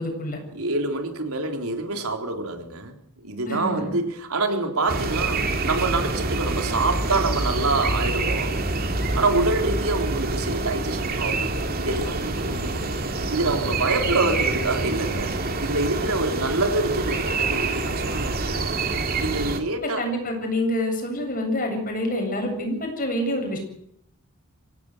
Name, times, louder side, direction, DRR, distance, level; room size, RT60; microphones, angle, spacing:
voice 1, 0.0-0.4 3.5-4.0 19.8-23.6, left 1 dB, 40° left, 3 dB, 7.8 m, -27 dB
voice 2, 0.5-2.9 3.2-8.8 9.1-12.9 13.3-15.3 15.6-18.6 19.2-20.0, right 2 dB, 80° right, 4 dB, 3.9 m, -26 dB
sound 1, 4.9-19.6, right 3 dB, 45° right, 2.7 m, -26 dB
25.5 x 17.0 x 8.1 m, 0.72 s
head